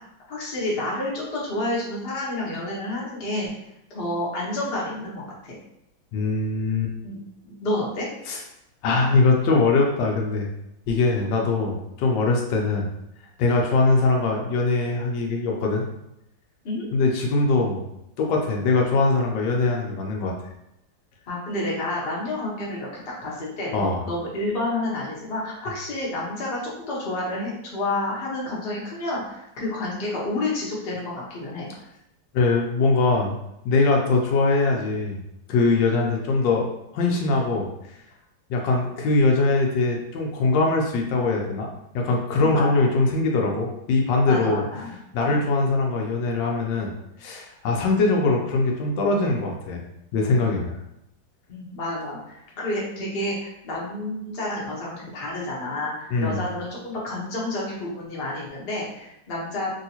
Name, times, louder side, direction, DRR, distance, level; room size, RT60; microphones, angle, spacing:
voice 1, 0.3-3.5 3.9-5.6 7.0-7.2 7.4-8.1 16.6-16.9 21.3-31.7 42.4-42.8 44.2-44.9 45.3-45.5 50.4-50.7 51.5-59.7, left 1 dB, 40° left, -5 dB, 0.9 m, -30 dB
voice 2, 6.1-6.9 8.3-8.4 8.8-10.5 10.9-12.9 13.4-15.9 16.9-17.8 18.2-20.3 23.7-24.0 32.3-33.4 33.6-35.2 35.5-36.7 36.9-37.7 38.5-41.7 41.9-44.6 45.1-46.9 47.2-49.8 50.1-50.8 56.1-56.4, left 3 dB, 80° left, 0 dB, 1.3 m, -22 dB
3.3 x 2.7 x 2.8 m, 0.83 s
omnidirectional pair, 2.0 m